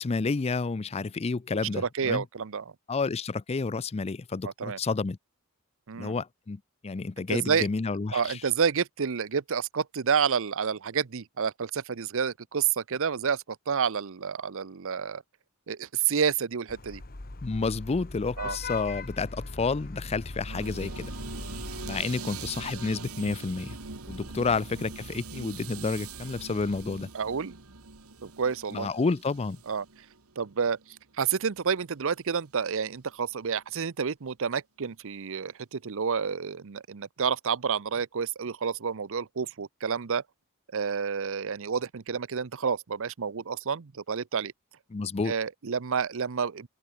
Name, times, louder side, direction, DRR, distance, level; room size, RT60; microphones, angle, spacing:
voice 1, 0.0-2.2 2.9-5.2 5.9-8.4 17.4-21.1 21.8-23.8 24.1-27.1 28.7-29.6 44.9-45.3, left 4 dB, 30° left, 0.4 m, -30 dB
voice 2, 1.5-2.6 4.4-4.8 5.9-6.1 7.3-7.7 8.1-15.2 15.7-17.0 18.4-18.6 20.5-20.6 27.1-27.5 28.2-28.9 29.7-29.8 30.4-30.8 31.2-40.2 40.7-44.5 45.3-46.7, right 6 dB, 65° right, 0.7 m, -29 dB
Vehicle horn car horn honking / Traffic noise roadway noise, 16.7-22.0, left 3 dB, 45° left, 1.3 m, -39 dB
sound 1, 20.6-31.7 32.0-32.3, right 4 dB, 80° right, 2.1 m, -42 dB
open air
head